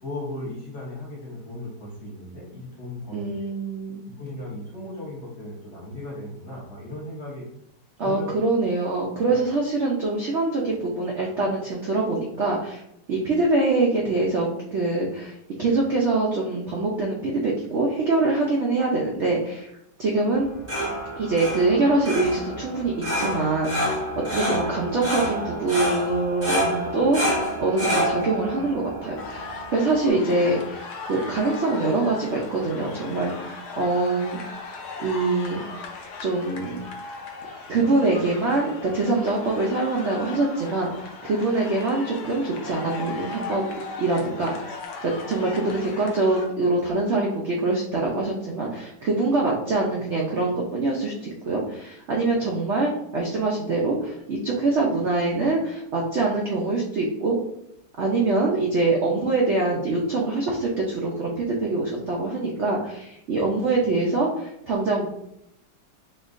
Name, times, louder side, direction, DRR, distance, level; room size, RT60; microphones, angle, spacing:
voice 1, 0.0-3.3 4.2-7.5 8.0-8.3 9.3-9.4 20.4-20.6 24.8-24.9 30.4-30.6, left 1 dB, 50° left, -4 dB, 1.0 m, -36 dB
voice 2, 3.1-4.0 8.0-12.8 13.1-19.7 20.0-20.5 21.2-24.0 24.3-30.8 31.1-34.4 35.0-35.6 36.2-36.8 37.7-43.6 44.0-44.5 45.0-57.4 58.0-65.1, right 2 dB, 75° right, -2 dB, 0.6 m, -24 dB
sound 1, 20.3-30.1, equal, 10° right, 0.7 m, -28 dB
sound 2, 29.2-46.5, left 4 dB, 70° left, 1.1 m, -38 dB
4.4 x 2.9 x 2.5 m, 0.77 s
omnidirectional pair, 1.9 m